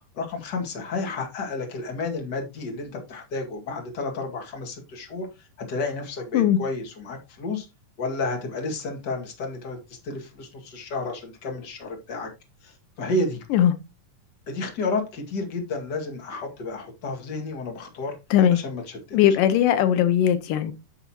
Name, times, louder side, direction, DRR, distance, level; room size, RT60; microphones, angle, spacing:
voice 1, 0.1-5.3 5.7-7.7 8.0-12.3 12.6-13.4 14.5-18.2 18.6-19.0, left 3 dB, 35° left, 2.4 m, -31 dB
voice 2, 19.1-20.7, left 10 dB, 80° left, 2.3 m, -19 dB
10.0 x 6.8 x 2.9 m
omnidirectional pair, 3.8 m